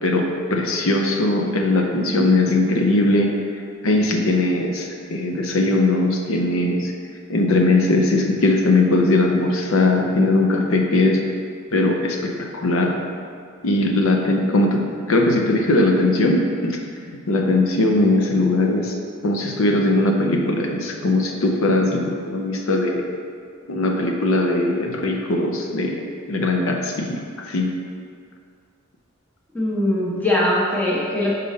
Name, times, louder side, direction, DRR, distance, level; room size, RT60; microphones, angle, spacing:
voice 1, 0.0-3.3 3.8-6.9 7.3-11.2 11.7-12.9 13.6-16.8 17.1-18.9 19.2-23.0 23.7-26.0 26.3-27.2 27.5-27.7, left 2 dB, 75° left, 1 dB, 0.6 m, -19 dB
voice 2, 29.5-31.3, left 1 dB, 10° left, -6 dB, 1.0 m, -21 dB
5.4 x 4.1 x 5.2 m, 2.2 s
head